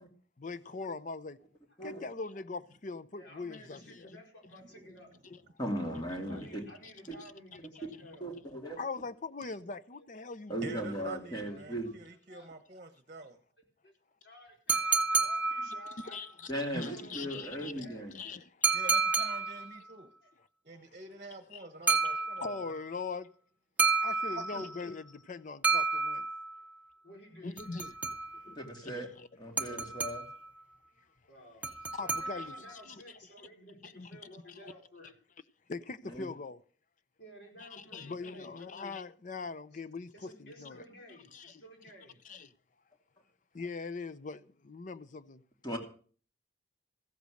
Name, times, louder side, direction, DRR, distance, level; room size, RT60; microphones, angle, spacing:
voice 1, 0.4-1.4 1.8-4.2 5.2-5.4 6.1-6.5 8.8-10.8 16.0-17.7 18.1-18.7 21.5-21.6 22.4-23.3 24.0-26.2 27.4-28.0 28.5-28.6 28.8-29.3 29.7-29.8 31.9-33.0 33.8-34.1 34.6-34.7 35.7-36.6 37.6-40.8 41.3-41.6 42.2-42.5 43.5-45.4, left 4 dB, 45° left, 0.6 m, -41 dB
voice 2, 3.1-5.1 6.3-8.3 9.6-10.1 11.5-11.6 12.3-12.5 13.8-13.9 14.2-16.2 16.7-18.1 20.2-20.3 27.0-27.6 28.1-28.2 31.3-31.7 32.0-35.2 37.2-38.7 39.7-39.8 40.1-42.2, equal, 75° left, 4.6 m, -54 dB
voice 3, 4.6-5.0 9.4-9.6 10.6-13.4 18.7-20.1 20.6-22.7 24.3-24.7, right 3 dB, 45° right, 1.1 m, -47 dB
voice 4, 5.6-6.6 7.1-7.2 8.2-8.8 10.5-11.9 16.5-18.2 28.6-29.1 29.4-30.3 36.0-36.3 45.6-45.8, equal, 25° left, 2.7 m, -37 dB
sound 1, 14.7-16.2 18.6-19.8 21.9-22.8 23.8-24.8 25.6-26.7 27.6-28.5 29.6-30.5 31.6-32.7, right 4 dB, 10° right, 0.9 m, -30 dB
14.5 x 8.3 x 6.4 m
head